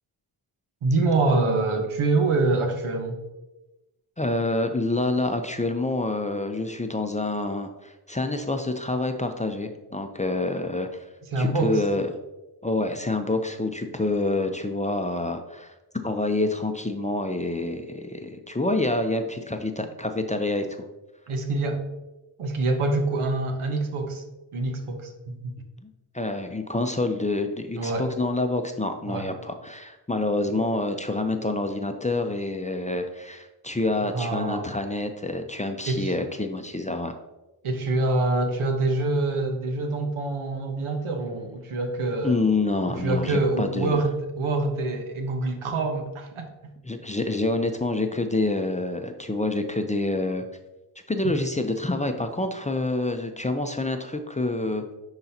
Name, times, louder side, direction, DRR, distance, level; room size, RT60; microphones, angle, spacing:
voice 1, 0.8-3.2 11.3-11.8 21.3-21.8 22.4-24.2 24.5-25.6 27.8-28.1 29.1-29.3 34.1-34.7 35.9-36.1 37.6-42.4 42.9-46.5 51.2-51.3, right 2 dB, 80° right, 4 dB, 1.1 m, -25 dB
voice 2, 4.2-11.0 11.4-12.1 12.6-15.7 16.0-20.8 25.8-25.9 26.1-37.1 42.2-44.0 46.8-50.4 51.1-54.9, left 2 dB, 15° left, 6 dB, 0.6 m, -27 dB
10.0 x 3.9 x 2.8 m, 1.0 s
cardioid pair, 50°, 49 cm